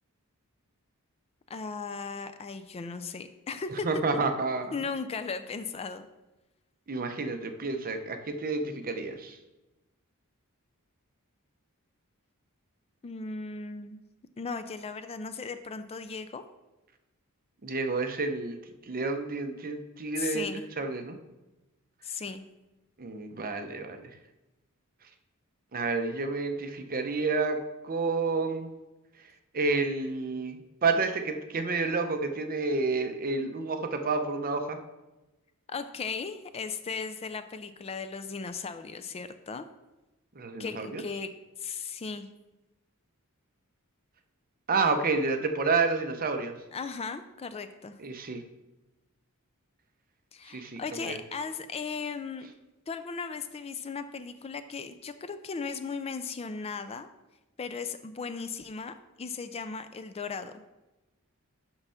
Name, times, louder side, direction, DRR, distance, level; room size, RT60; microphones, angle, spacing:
voice 1, 1.5-3.9 4.7-6.1 13.0-14.0 14.4-16.4 20.2-20.7 22.0-22.4 35.7-39.7 40.6-41.3 41.6-42.3 46.7-48.0 50.3-52.5 52.9-57.1 57.6-60.5, left 5 dB, 25° left, 10 dB, 0.4 m, -37 dB
voice 2, 3.8-4.8 6.9-9.4 17.6-18.6 18.9-20.5 20.8-21.2 23.0-24.1 25.7-27.6 27.8-28.7 29.5-34.8 40.4-41.0 44.7-46.6 48.0-48.4 50.5-51.2, right 3 dB, 40° right, 7 dB, 0.7 m, -29 dB
5.8 x 5.4 x 5.7 m, 1.0 s
head